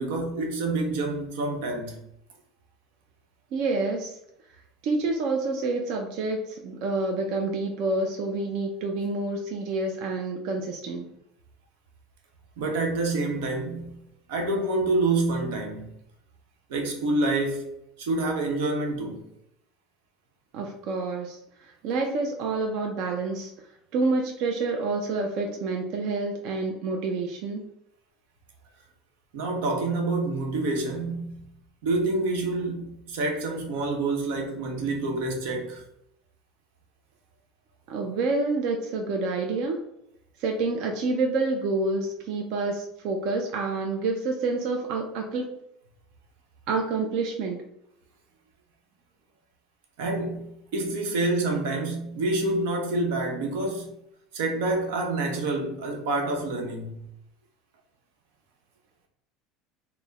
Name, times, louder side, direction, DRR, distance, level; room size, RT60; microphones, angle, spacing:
voice 1, 0.0-2.0 12.6-14.0 14.3-15.9 16.7-17.7 18.0-19.2 29.3-31.5 31.8-35.8 50.0-53.9 54.3-57.0, right 2 dB, 85° right, 1.0 m, -27 dB
voice 2, 3.5-4.2 4.8-11.1 20.5-21.4 21.8-23.5 23.9-27.6 37.9-39.8 40.4-45.5 46.7-47.6, right 3 dB, 50° right, 0.5 m, -28 dB
4.4 x 2.1 x 4.0 m
cardioid pair, 175°, 0 cm